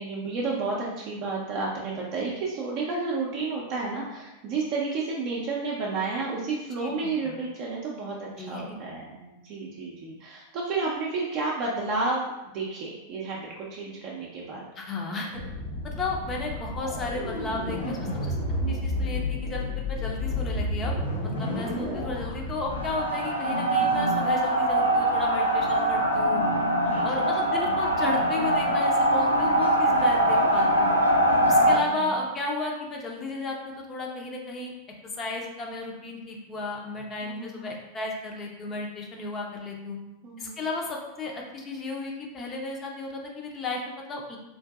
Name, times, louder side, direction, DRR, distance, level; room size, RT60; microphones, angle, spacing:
voice 1, 0.0-14.6 18.6-18.8 21.5-21.9 26.5-27.5 31.6-32.0 37.2-37.7 40.2-40.6, right 3 dB, 40° right, -4 dB, 0.5 m, -32 dB
voice 2, 6.8-7.1 8.4-8.8 14.8-15.4 15.8-18.4 18.7-26.5 27.0-31.0 31.5-33.6 33.9-34.7 35.0-40.0 40.4-44.4, left 2 dB, 25° left, 0 dB, 0.6 m, -34 dB
sound 1, 15.3-22.9, left 1 dB, 70° left, 0.9 m, -31 dB
sound 2, 22.7-31.8, right 1 dB, 85° left, 0.4 m, -23 dB
3.8 x 2.5 x 2.3 m, 0.95 s
figure-of-eight pair, 90°, 0 cm